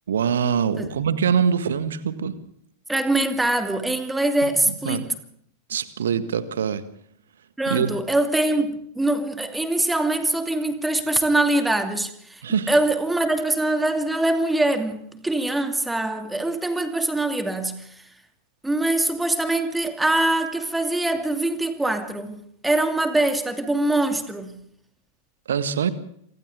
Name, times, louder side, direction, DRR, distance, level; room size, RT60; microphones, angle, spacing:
voice 1, 0.1-2.3 4.4-4.5 4.8-5.1 5.7-6.8 7.7-7.9 12.4-12.8 25.5-25.9, right 7 dB, 65° right, 1.7 m, -23 dB
voice 2, 2.9-5.1 7.6-18.0 18.6-24.6, right 2 dB, 5° right, 2.7 m, -23 dB
27.5 x 25.5 x 3.7 m
figure-of-eight pair, 90°, 0 cm